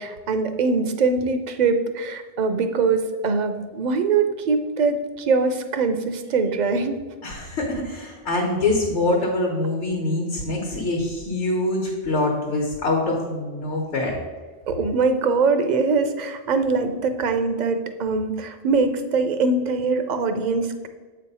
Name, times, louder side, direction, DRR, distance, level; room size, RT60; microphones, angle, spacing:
voice 1, 0.0-7.0 14.7-20.9, right 4 dB, 55° right, 8 dB, 0.5 m, -22 dB
voice 2, 7.2-14.1, left 2 dB, 80° left, -1 dB, 1.3 m, -24 dB
8.0 x 3.2 x 5.4 m, 1.3 s
omnidirectional pair, 1.2 m